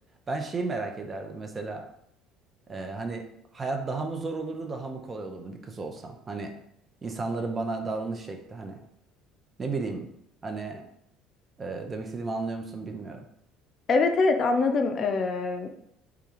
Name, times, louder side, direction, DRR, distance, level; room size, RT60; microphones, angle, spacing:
voice 1, 0.3-1.8 2.7-6.5 7.0-8.8 9.6-10.1 10.4-10.9 11.6-13.2, right 3 dB, 30° right, 4 dB, 0.4 m, -33 dB
voice 2, 13.9-15.7, left 3 dB, 45° left, 6 dB, 0.3 m, -24 dB
2.3 x 2.3 x 3.0 m, 0.74 s
hypercardioid pair, 65°, 0 cm